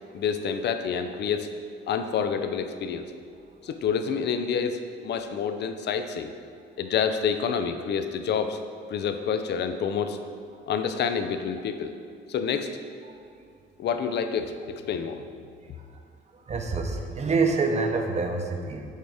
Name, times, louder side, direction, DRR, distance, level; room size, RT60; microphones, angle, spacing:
voice 1, 0.1-1.5 1.9-3.1 3.6-6.3 6.8-8.6 8.9-10.2 10.7-11.9 12.3-12.7 13.8-15.2, left 6 dB, 60° left, 8 dB, 0.5 m, -28 dB
voice 2, 16.5-18.8, right 4 dB, 35° right, 4 dB, 0.7 m, -26 dB
6.4 x 3.4 x 4.9 m, 2.3 s
cardioid pair, 90°, 20 cm